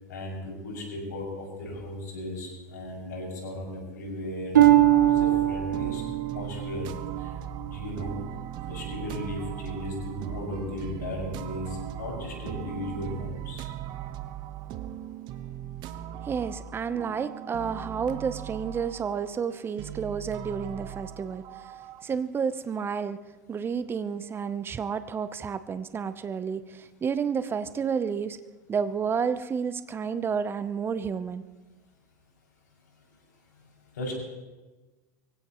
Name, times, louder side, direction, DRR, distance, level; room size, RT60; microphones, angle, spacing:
voice 1, 0.1-4.5 5.0-6.0 6.3-6.8 7.2-7.3 7.6-8.2 8.7-13.6 33.9-34.1, left 1 dB, 80° left, -1 dB, 6.6 m, -36 dB
sound 1, 4.5-22.0, right 11 dB, 50° right, 1.1 m, -39 dB
Harp, 4.5-8.3 8.8-9.2 9.9-10.0, right 13 dB, 85° right, 1.8 m, -23 dB
voice 2, 16.2-21.7 22.0-23.2 23.5-28.4 28.7-31.4, right 6 dB, 25° right, 13 dB, 0.8 m, -30 dB
24.0 x 16.5 x 3.1 m, 1.2 s
hypercardioid pair, 90°, 10 cm